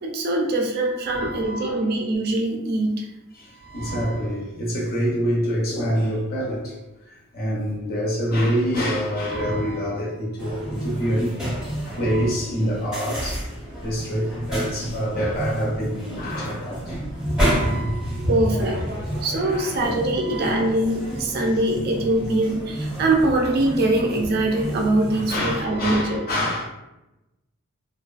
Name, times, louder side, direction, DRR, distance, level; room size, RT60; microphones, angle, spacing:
voice 1, 0.0-3.1 10.5-10.6 18.3-26.2, right 1 dB, 45° right, 1 dB, 0.4 m, -23 dB
voice 2, 1.1-1.8 3.4-6.7 7.3-11.4 11.8-13.4 13.8-17.0 17.2-18.3 19.0-19.2 19.4-20.6 25.3-26.6, equal, 40° left, -4 dB, 0.5 m, -26 dB
sound 1, 10.4-25.6, right 1 dB, 5° right, 0.7 m, -31 dB
2.4 x 2.2 x 2.3 m, 0.95 s
head